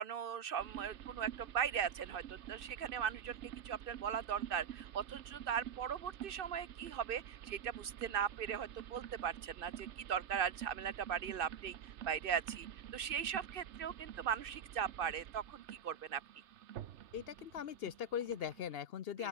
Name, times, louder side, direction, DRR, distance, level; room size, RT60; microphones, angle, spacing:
voice 1, 0.0-2.2 2.5-3.4 3.6-11.8 12.1-12.7 12.9-16.2, right 8 dB, 60° right, 0.7 m, -38 dB
sound 1, 0.6-18.8, right 11 dB, 80° right, 1.0 m, -50 dB
voice 2, 17.1-19.3, left 9 dB, 60° left, 0.9 m, -40 dB
open air
omnidirectional pair, 1.2 m